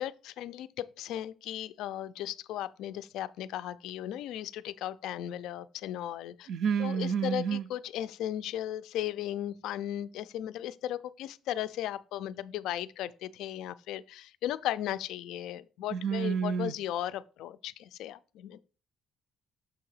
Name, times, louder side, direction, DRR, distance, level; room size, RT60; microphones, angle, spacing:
voice 1, 0.0-6.5 6.8-18.6, left 12 dB, 85° left, 0.3 m, -36 dB
voice 2, 6.5-7.6 15.9-16.7, right 7 dB, 55° right, 0.3 m, -29 dB
6.5 x 2.8 x 5.5 m
cardioid pair, 170°, 0 cm